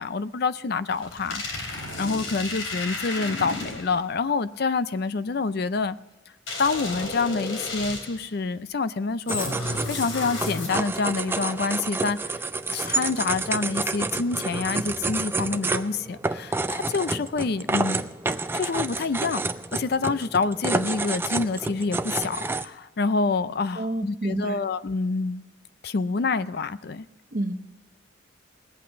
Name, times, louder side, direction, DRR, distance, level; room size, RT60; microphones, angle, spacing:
voice 1, 0.0-6.0 6.6-9.5 9.9-12.4 12.7-18.0 18.5-19.4 19.7-25.4 25.8-27.1, left 4 dB, 50° left, 0.4 m, -27 dB
sound 1, 0.9-4.0 6.5-8.3 9.3-11.0, left 2 dB, 75° left, 3.3 m, -33 dB
sound 2, 9.3-22.6, right 3 dB, 10° right, 0.4 m, -29 dB
voice 2, 23.8-24.7 27.3-27.6, right 1 dB, 40° right, 0.8 m, -29 dB
19.5 x 8.5 x 5.0 m
head